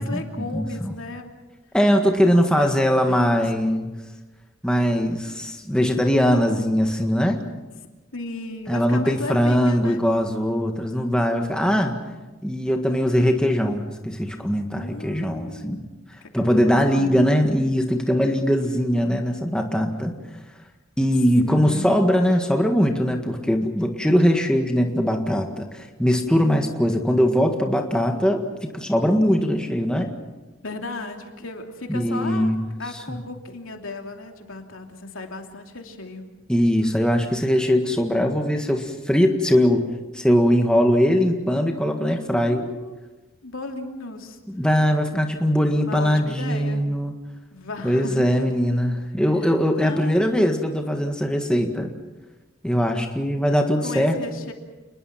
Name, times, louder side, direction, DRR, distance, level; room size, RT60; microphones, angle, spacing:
voice 1, 0.0-1.3 2.2-2.7 3.1-3.8 8.1-10.0 14.7-15.8 16.2-17.2 21.4-22.0 30.6-32.5 32.8-36.3 42.3-42.9 43.4-44.4 45.8-46.8 47.5-48.4 49.8-50.4 53.8-54.5, left 2 dB, 85° left, 3 dB, 2.8 m, -35 dB
voice 2, 0.5-0.9 1.7-3.9 4.6-7.4 8.7-12.0 12.4-15.8 16.3-20.2 21.0-30.2 31.9-32.6 33.1-33.2 36.5-39.8 40.1-42.6 44.5-47.1 47.8-51.9 52.6-54.2, equal, 5° left, 3 dB, 1.7 m, -21 dB
29.0 x 21.0 x 5.9 m, 1.1 s
head